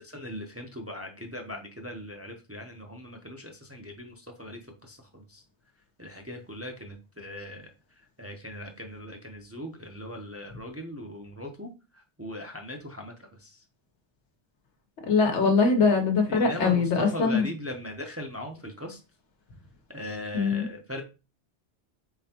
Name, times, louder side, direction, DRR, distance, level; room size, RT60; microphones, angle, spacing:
voice 1, 0.0-4.6 4.9-5.4 6.0-7.7 8.2-11.7 12.2-13.1 13.4-13.5 16.3-19.0 19.9-21.0, equal, 20° right, 0.5 m, -39 dB
voice 2, 15.1-17.5 20.3-20.6, left 4 dB, 90° left, 1.2 m, -22 dB
4.3 x 3.8 x 2.8 m
omnidirectional pair, 1.1 m